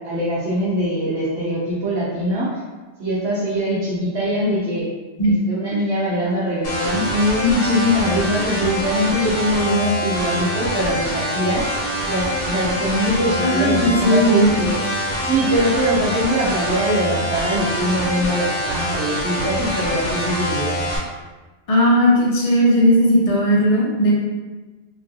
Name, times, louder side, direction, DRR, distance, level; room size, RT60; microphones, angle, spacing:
voice 1, 0.0-2.6 3.0-4.9 5.2-11.7 12.0-14.8 15.3-20.9, equal, 90° right, -8 dB, 0.9 m, -22 dB
sound 1, 6.6-21.0, equal, 70° left, 1.1 m, -25 dB
voice 2, 13.4-14.6 21.7-24.1, equal, 35° left, -5 dB, 0.7 m, -16 dB
2.9 x 2.3 x 2.6 m, 1.3 s
omnidirectional pair, 1.1 m